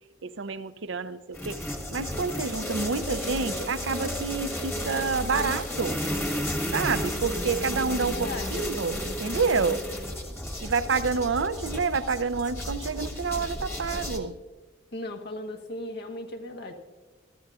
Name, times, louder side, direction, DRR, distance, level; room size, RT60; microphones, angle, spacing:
voice 1, 0.2-1.6 1.9-6.0 6.7-9.8 10.6-14.4, right 4 dB, 85° right, 12 dB, 0.7 m, -28 dB
sound 1, 1.3-14.2, equal, 15° left, 1.4 m, -32 dB
voice 2, 7.9-8.6 14.9-16.7, left 1 dB, 60° left, 4 dB, 1.4 m, -37 dB
22.0 x 14.5 x 2.5 m, 1.3 s
head